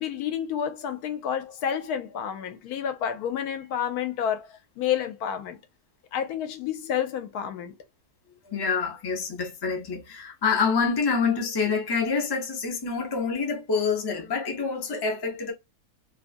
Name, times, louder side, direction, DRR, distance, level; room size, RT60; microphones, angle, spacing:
voice 1, 0.0-5.6 6.1-7.7, left 9 dB, 75° left, 1.0 m, -30 dB
voice 2, 8.4-15.5, left 5 dB, 40° left, 0.3 m, -27 dB
2.8 x 2.3 x 2.5 m
omnidirectional pair, 1.7 m